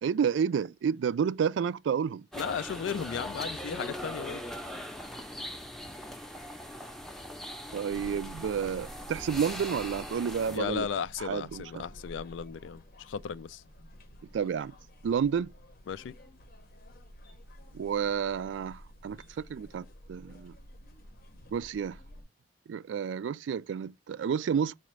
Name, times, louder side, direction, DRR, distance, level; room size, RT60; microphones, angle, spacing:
voice 1, 0.0-2.3 7.7-10.9 11.2-11.6 14.3-14.7 15.0-15.5 17.7-20.5 21.5-22.0 22.7-24.8, right 7 dB, 75° right, 0.3 m, -30 dB
voice 2, 2.3-4.4 10.5-13.6 15.9-16.1, left 7 dB, 80° left, 0.4 m, -35 dB
sound 1, 2.3-10.6, left 1 dB, ahead, 0.6 m, -40 dB
sound 2, 7.9-22.2, equal, 55° left, 0.7 m, -51 dB
4.2 x 2.5 x 3.1 m
head